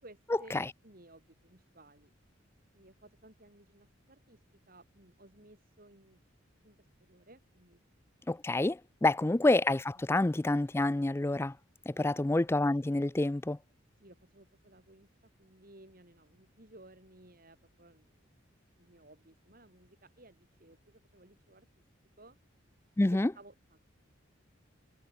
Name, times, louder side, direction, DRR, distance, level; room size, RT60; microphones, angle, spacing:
voice 1, 0.0-0.6 0.8-2.1 2.7-6.2 6.6-7.8 9.9-10.3 11.9-12.2 14.0-18.3 18.8-21.8 22.2-22.4 23.1-23.8, right 1 dB, 45° right, 4.8 m, -58 dB
voice 2, 8.3-11.5 11.9-13.6 23.0-23.3, left 2 dB, 10° left, 0.4 m, -28 dB
head